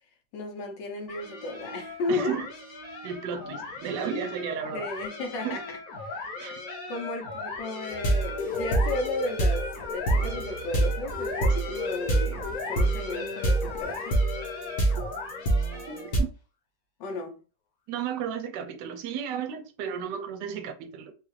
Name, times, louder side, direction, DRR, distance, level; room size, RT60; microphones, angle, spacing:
voice 1, 0.3-2.4 4.7-5.8 6.0-6.3 6.9-14.2 17.0-17.4, left 2 dB, 85° left, 1.5 m, -34 dB
sound 1, 1.1-16.2, left 4 dB, 60° left, 1.3 m, -38 dB
voice 2, 2.1-2.5 3.0-4.9 5.4-5.6 6.4-6.6 15.0-15.1 15.9-16.3 17.9-21.1, right 7 dB, 75° right, 1.2 m, -33 dB
sound 2, 7.9-16.2, right 2 dB, 45° left, 0.9 m, -27 dB
3.5 x 2.4 x 3.1 m
omnidirectional pair, 1.9 m